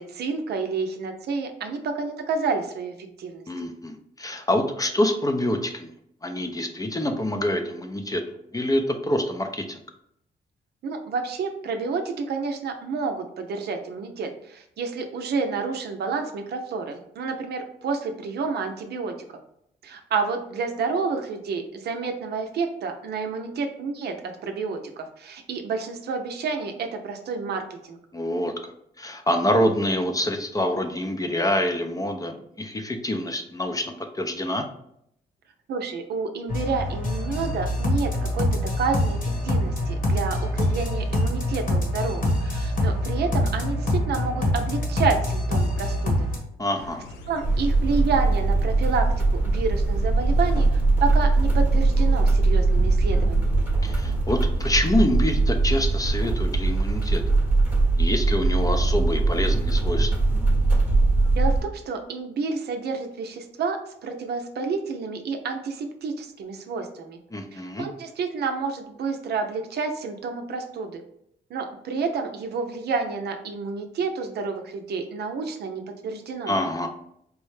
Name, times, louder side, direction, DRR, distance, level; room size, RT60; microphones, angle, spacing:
voice 1, 0.0-3.4 10.8-19.1 19.8-28.0 35.7-46.3 47.3-49.1 49.3-53.7 61.3-67.2 67.5-71.0 71.5-76.5, right 4 dB, 70° right, 5 dB, 0.6 m, -29 dB
voice 2, 3.5-5.9 6.2-8.2 8.5-9.8 28.1-28.5 29.0-34.6 46.6-47.0 53.8-57.2 58.0-60.1 67.3-67.9 76.5-76.9, left 1 dB, 20° left, 5 dB, 0.5 m, -26 dB
sound 1, 36.5-46.4, left 1 dB, 50° left, 1.2 m, -25 dB
sound 2, 46.8-54.0, left 4 dB, 85° left, 0.4 m, -41 dB
sound 3, 47.4-61.6, right 3 dB, 10° right, 1.0 m, -21 dB
4.6 x 2.1 x 3.2 m, 0.74 s
cardioid pair, 70°, 17 cm